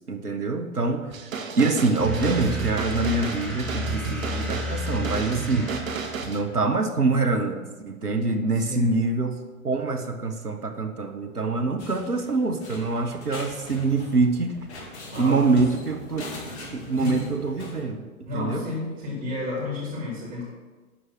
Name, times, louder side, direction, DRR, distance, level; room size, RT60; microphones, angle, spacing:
voice 1, 0.1-1.1 1.6-5.7 6.3-14.6 15.2-16.4 16.7-18.1 18.3-18.7, right 3 dB, 90° right, 6 dB, 1.2 m, -25 dB
sound 1, 1.1-6.4, right 6 dB, 60° right, 1.3 m, -33 dB
sound 2, 2.0-6.7, left 2 dB, ahead, 1.7 m, -33 dB
sound 3, 11.8-17.8, left 2 dB, 45° left, 2.2 m, -41 dB
voice 2, 15.1-15.7 17.0-17.3 18.2-20.4, left 3 dB, 20° right, -5 dB, 3.3 m, -31 dB
12.0 x 4.8 x 6.2 m, 1.3 s
figure-of-eight pair, 110°, 45 cm